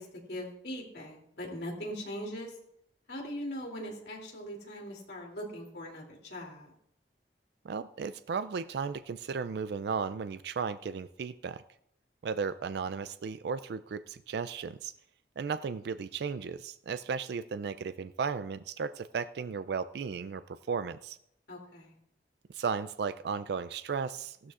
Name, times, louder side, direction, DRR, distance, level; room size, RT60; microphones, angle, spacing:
voice 1, 0.0-2.5 3.1-6.7 21.5-21.9, equal, 70° left, -1 dB, 2.9 m, -40 dB
voice 2, 7.6-11.6 12.2-14.9 15.4-21.2 22.5-24.5, right 5 dB, 65° right, 13 dB, 0.3 m, -35 dB
15.5 x 12.5 x 2.5 m, 0.74 s
head